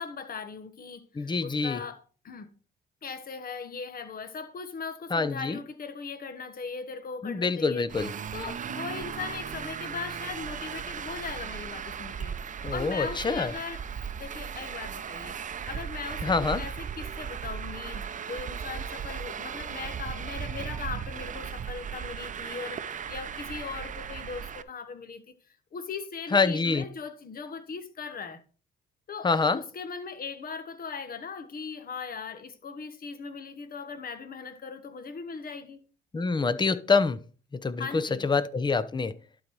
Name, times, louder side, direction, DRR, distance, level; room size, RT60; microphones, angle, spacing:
voice 1, 0.0-2.5 3.0-7.9 8.3-12.4 12.7-13.9 14.2-15.4 15.7-25.2 25.5-28.4 29.1-35.9 37.8-38.3, left 5 dB, 45° left, 1.3 m, -39 dB
voice 2, 1.2-1.8 5.1-5.6 7.2-8.1 12.6-13.5 16.2-16.6 26.3-26.8 29.2-29.6 36.1-37.2 37.5-39.1, left 4 dB, 20° left, 0.7 m, -26 dB
Traffic noise roadway noise, 7.9-24.6, right 7 dB, 40° right, 0.6 m, -37 dB
11.5 x 4.0 x 4.7 m
cardioid pair, 90°, 20 cm